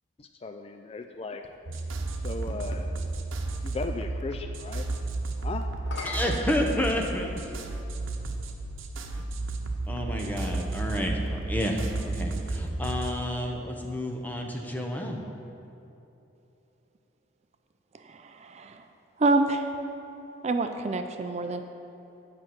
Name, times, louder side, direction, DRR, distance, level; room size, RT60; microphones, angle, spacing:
voice 1, 0.2-1.4 2.2-2.9 3.6-4.8 5.4-5.7, left 3 dB, 30° left, 6 dB, 0.3 m, -36 dB
sound 1, 1.0-2.9 5.7-7.5 8.4-8.5 12.2-13.8, left 3 dB, 65° left, 1.0 m, -43 dB
sound 2, 1.7-13.1, right 2 dB, 85° right, 0.9 m, -32 dB
voice 2, 6.0-7.5 9.2-9.3 9.9-15.2, left 1 dB, 10° left, 1 dB, 0.9 m, -30 dB
voice 3, 18.1-18.8 19.2-19.6 20.4-21.6, right 2 dB, 35° right, 6 dB, 0.4 m, -27 dB
8.9 x 5.8 x 7.6 m, 2.9 s
head